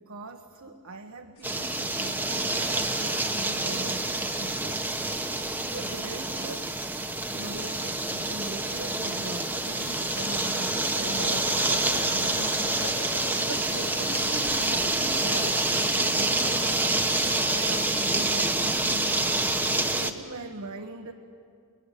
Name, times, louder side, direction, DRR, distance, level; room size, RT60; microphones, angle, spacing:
voice 1, 0.0-4.8 5.7-6.7 7.3-13.1 13.4-16.9 17.2-19.2 19.9-21.1, right 2 dB, 80° right, 3 dB, 1.4 m, -41 dB
sound 1, 1.4-3.5 5.0-5.3 5.8-6.2 7.1-7.7 8.0-8.2 8.7-8.8 9.4-15.5, left 3 dB, 80° left, 4.4 m, -42 dB
sound 2, 1.4-20.1, right 2 dB, 10° right, 1.1 m, -27 dB
29.5 x 21.0 x 9.4 m, 2.2 s
head